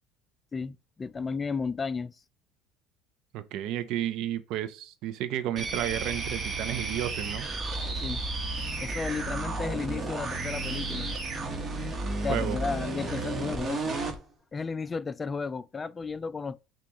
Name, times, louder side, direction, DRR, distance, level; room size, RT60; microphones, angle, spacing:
voice 1, 0.5-2.2 8.0-8.2 8.8-11.1 12.2-13.9 14.5-16.6, left 5 dB, 25° left, 0.3 m, -33 dB
voice 2, 3.3-7.5 12.3-12.6, right 12 dB, 65° right, 0.6 m, -32 dB
sound 1, 5.6-14.2, right 2 dB, 30° right, 1.2 m, -33 dB
6.0 x 2.4 x 3.0 m
supercardioid pair, 85°, 0 cm